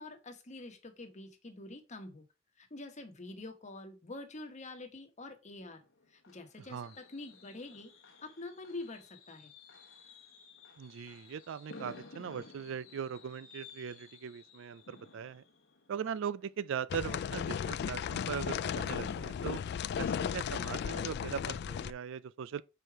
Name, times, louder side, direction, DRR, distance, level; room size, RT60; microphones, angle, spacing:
voice 1, 0.0-2.2 2.6-5.8 6.1-7.9 8.2-9.5, left 2 dB, 35° left, 1.1 m, -46 dB
Fireworks, 5.6-17.3 17.7-17.9 18.2-18.3, left 3 dB, 75° left, 1.2 m, -55 dB
voice 2, 10.8-15.4 15.9-19.6 20.0-22.6, right 7 dB, 65° right, 0.4 m, -40 dB
sound 1, 16.9-21.9, left 7 dB, 55° left, 0.3 m, -35 dB
4.9 x 4.5 x 4.7 m
head